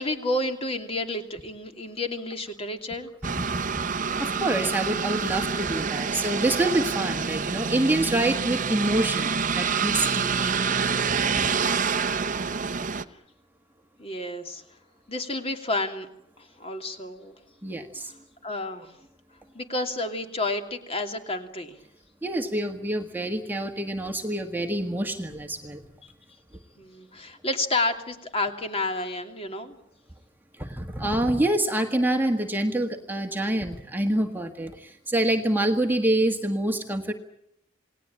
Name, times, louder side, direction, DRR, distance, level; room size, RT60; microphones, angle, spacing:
voice 1, 0.0-3.1 14.0-14.6 15.1-16.1 16.4-17.3 18.4-18.9 19.5-21.8 26.8-29.8, left 2 dB, 30° left, 5 dB, 2.7 m, -30 dB
voice 2, 3.2-3.6 4.2-10.9 17.6-18.1 22.2-25.8 30.5-37.1, right 1 dB, 10° right, 4 dB, 1.6 m, -26 dB
sound 1, 3.2-13.0, right 5 dB, 40° right, 1.0 m, -27 dB
28.5 x 19.0 x 8.7 m, 0.80 s
head